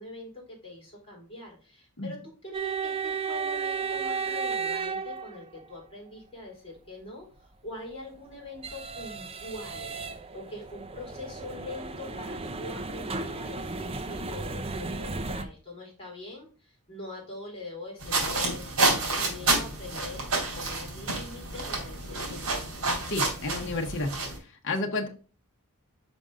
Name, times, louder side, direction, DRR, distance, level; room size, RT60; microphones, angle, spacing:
voice 1, 0.0-2.2 2.4-22.6 25.0-25.1, left 2 dB, 25° left, -2 dB, 3.4 m, -43 dB
sound 1, 2.5-5.7 7.8-15.4, right 5 dB, 25° right, 0.5 m, -34 dB
sound 2, 18.0-24.4, right 3 dB, 65° right, 3.1 m, -29 dB
voice 2, 23.1-24.1 24.6-25.1, left 2 dB, 55° left, 2 dB, 1.0 m, -30 dB
5.3 x 5.2 x 3.7 m, 0.37 s
head